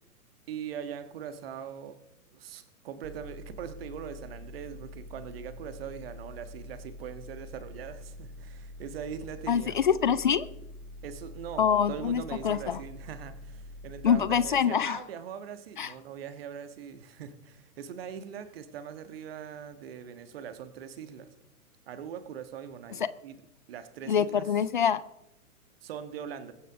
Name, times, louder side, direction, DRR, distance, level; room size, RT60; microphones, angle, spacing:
voice 1, 0.5-2.0 2.3-9.8 11.0-21.3 21.9-23.4 23.7-24.5 25.8-26.5, right 8 dB, 40° right, 11 dB, 1.5 m, -41 dB
sound 1, 3.0-14.5, left 1 dB, 55° right, 1.4 m, -46 dB
voice 2, 9.5-10.5 11.6-12.8 14.0-15.0 15.8-15.9 24.1-25.0, left 8 dB, 35° left, 17 dB, 0.5 m, -25 dB
22.0 x 9.4 x 3.6 m, 0.86 s
figure-of-eight pair, 115°, 45 cm